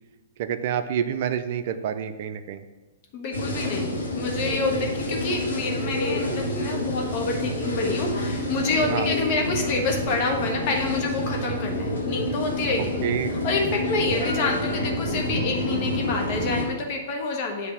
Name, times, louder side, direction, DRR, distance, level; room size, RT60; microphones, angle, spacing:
voice 1, 0.4-2.6 8.9-9.1 13.0-13.4, right 9 dB, 55° right, 10 dB, 0.4 m, -28 dB
voice 2, 3.1-17.7, left 3 dB, 45° left, 2 dB, 1.2 m, -28 dB
sound 1, 3.3-16.6, left 1 dB, 90° left, 1.4 m, -28 dB
8.0 x 2.7 x 5.5 m, 1.3 s
hypercardioid pair, 120°, 0 cm